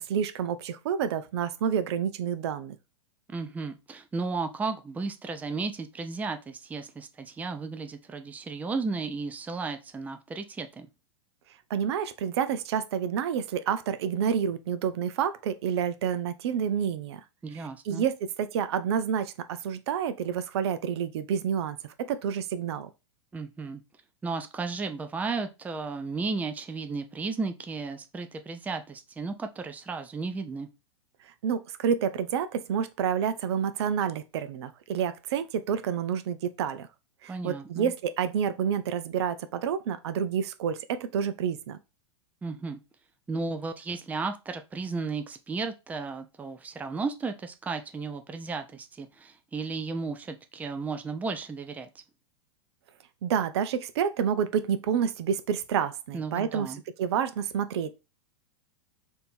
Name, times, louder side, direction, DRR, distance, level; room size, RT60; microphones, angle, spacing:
voice 1, 0.0-2.8 11.7-17.2 17.5-22.9 31.4-36.9 37.2-41.8 53.2-56.7 57.0-57.9, right 8 dB, 65° right, 0.5 m, -29 dB
voice 2, 3.3-10.9 17.4-18.1 23.3-23.8 24.2-30.7 37.3-37.9 42.4-42.8 43.3-51.9 56.1-56.8, right 4 dB, 10° right, 0.4 m, -34 dB
3.5 x 2.7 x 4.3 m
hypercardioid pair, 105°, 15 cm